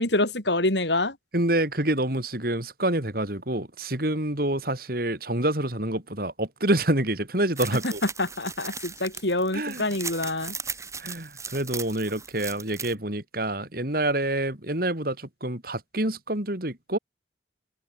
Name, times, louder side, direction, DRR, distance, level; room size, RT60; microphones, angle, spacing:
voice 1, 0.0-1.2 7.8-7.9 8.2-10.5, left 2 dB, 70° left, 4.9 m, -26 dB
voice 2, 1.3-8.0 9.5-9.9 11.0-17.0, right 1 dB, 50° right, 3.9 m, -27 dB
sound 1, 7.6-12.9, right 5 dB, 15° right, 5.2 m, -37 dB
open air
head